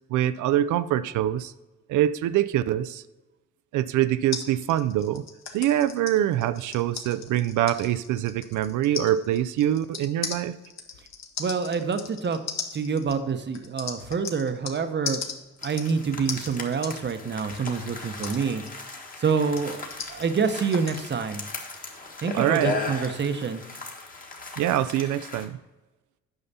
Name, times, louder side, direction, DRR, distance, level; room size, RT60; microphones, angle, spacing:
voice 1, 0.1-1.5 1.9-3.0 3.7-5.2 5.5-10.5 22.3-22.8 24.6-25.6, right 12 dB, 80° right, 14 dB, 0.5 m, -24 dB
sound 1, 4.3-14.8 15.1-21.0, left 6 dB, 65° left, 1.2 m, -37 dB
voice 2, 11.4-12.4 12.7-15.2 15.6-18.6 19.2-21.4 22.2-23.6, right 5 dB, 35° right, 8 dB, 0.9 m, -27 dB
sound 2, 15.6-25.5, left 3 dB, 30° left, 1.5 m, -37 dB
8.8 x 5.6 x 4.1 m, 1.1 s
cardioid pair, 90°, 30 cm